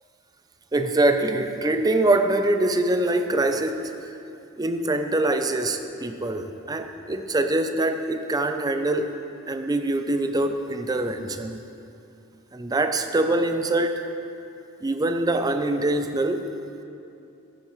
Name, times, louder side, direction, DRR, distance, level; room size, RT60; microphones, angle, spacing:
voice 1, 0.7-3.9 4.6-9.1 9.5-11.6 12.5-14.1 14.8-16.4, right 2 dB, 15° right, 7 dB, 0.4 m, -24 dB
13.5 x 8.8 x 3.1 m, 2.8 s
head